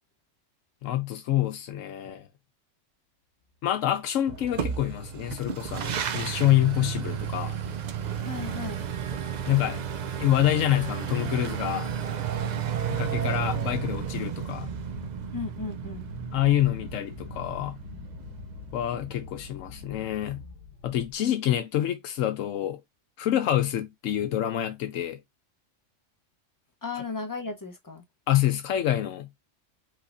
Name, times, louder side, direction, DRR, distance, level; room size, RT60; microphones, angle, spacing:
voice 1, 0.8-2.3 3.6-7.6 9.5-9.8 10.2-11.9 12.9-14.7 16.3-17.8 18.7-20.4 20.8-22.8 23.2-25.2 28.3-29.4, left 12 dB, 85° left, 1.0 m, -27 dB
sound 1, 4.0-21.2, left 5 dB, 70° left, 1.2 m, -47 dB
sound 2, 4.3-20.0, right 9 dB, 85° right, 0.3 m, -33 dB
voice 2, 8.2-8.8 15.3-16.0 26.8-28.0, left 4 dB, 20° left, 0.7 m, -35 dB
5.4 x 3.4 x 2.5 m
omnidirectional pair, 1.3 m